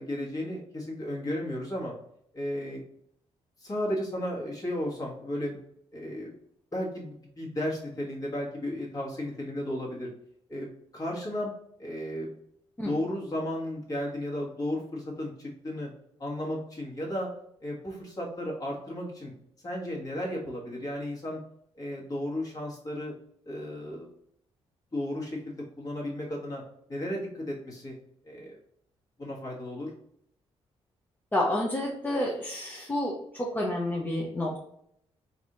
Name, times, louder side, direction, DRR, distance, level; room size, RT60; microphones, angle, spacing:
voice 1, 0.0-1.9 2.3-2.8 3.6-5.6 5.9-6.3 6.7-10.1 10.5-11.5 11.8-12.3 12.8-15.9 16.2-17.3 17.6-19.3 19.6-21.4 21.8-23.1 23.4-24.1 24.9-26.6 26.9-27.9 28.3-28.6 29.2-29.9, left 1 dB, 35° left, -4 dB, 1.5 m, -34 dB
voice 2, 31.3-33.1 33.5-34.6, left 1 dB, 15° left, -3 dB, 0.6 m, -29 dB
3.9 x 2.6 x 3.0 m, 0.70 s
cardioid pair, 110°, 11 cm